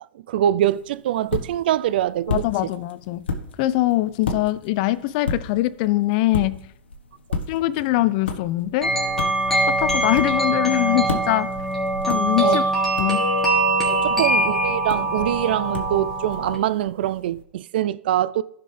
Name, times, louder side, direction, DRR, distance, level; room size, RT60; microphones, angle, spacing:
voice 1, 0.3-2.4 12.4-12.6 13.9-18.4, right 12 dB, 60° right, 0.4 m, -23 dB
sound 1, 0.7-17.4, left 4 dB, 80° left, 1.3 m, -35 dB
voice 2, 2.3-3.3 3.6-6.6 7.5-8.9 9.7-11.5 12.1-12.6 13.0-13.2, left 16 dB, 45° left, 0.5 m, -22 dB
sound 2, 8.8-16.6, right 2 dB, 5° left, 2.8 m, -22 dB
15.0 x 5.8 x 3.3 m
hypercardioid pair, 115°, 6 cm